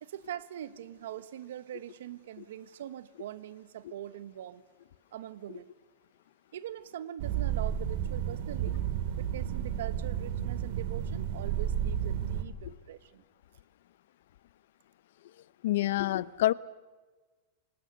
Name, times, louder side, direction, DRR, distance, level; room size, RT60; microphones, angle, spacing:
voice 1, 0.0-4.6 5.1-5.7 6.5-8.8 9.2-13.2, right 11 dB, 85° right, 14 dB, 1.3 m, -42 dB
sound 1, 7.2-12.4, right 9 dB, 55° right, 2.3 m, -32 dB
voice 2, 15.6-16.5, left 15 dB, 65° left, 19 dB, 0.7 m, -27 dB
29.5 x 25.5 x 6.8 m, 1.3 s
supercardioid pair, 170°, 0 cm